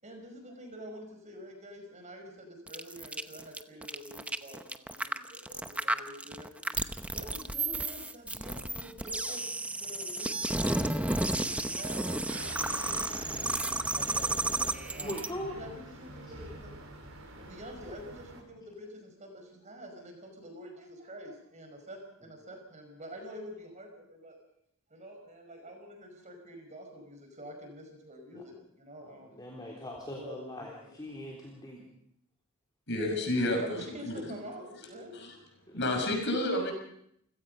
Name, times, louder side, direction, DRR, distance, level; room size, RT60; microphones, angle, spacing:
voice 1, 0.0-6.7 7.1-12.1 13.9-15.2 15.5-16.7 17.3-24.4 24.9-29.4 30.1-30.9 33.1-33.2 33.5-35.1, equal, 35° right, 4 dB, 5.4 m, -47 dB
sound 1, 2.7-15.3, right 2 dB, 5° right, 0.8 m, -32 dB
sound 2, 12.3-18.4, right 1 dB, 70° right, 4.4 m, -46 dB
voice 2, 15.0-15.6 28.3-28.4 29.0-31.8 35.7-35.8, left 1 dB, 20° left, -2 dB, 3.6 m, -41 dB
voice 3, 32.9-33.8 34.0-34.2 35.1-35.4 35.7-36.7, left 1 dB, 55° left, 3 dB, 6.3 m, -30 dB
28.5 x 17.0 x 5.5 m, 0.72 s
head